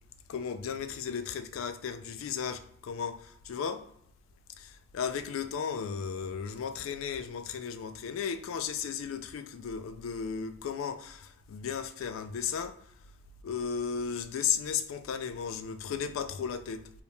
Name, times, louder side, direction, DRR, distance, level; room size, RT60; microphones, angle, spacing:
voice 1, 0.3-3.9 4.6-12.9 13.4-16.9, left 7 dB, 85° left, 0.3 m, -35 dB
2.7 x 2.0 x 3.2 m
head